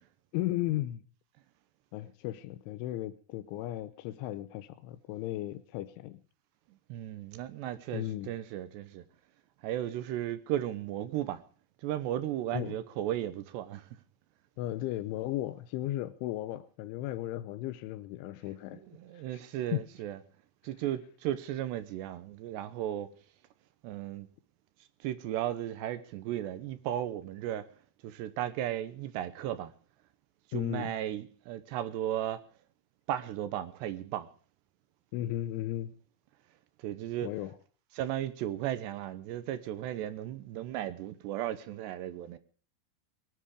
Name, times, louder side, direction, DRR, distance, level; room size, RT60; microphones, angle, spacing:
voice 1, 0.3-1.0 1.9-6.2 7.9-8.3 12.5-12.8 14.6-18.8 19.1-19.4 19.7-19.8 30.5-30.9 35.1-35.9 37.2-37.6, left 14 dB, 90° left, 3.3 m, -35 dB
voice 2, 6.9-9.0 9.6-11.4 11.8-13.9 18.9-20.2 20.6-23.1 23.8-24.3 25.0-27.7 28.0-29.7 30.5-32.4 33.1-34.3 36.8-37.3 37.9-42.4, right 12 dB, 75° right, 3.0 m, -35 dB
22.5 x 10.5 x 5.0 m
omnidirectional pair, 5.3 m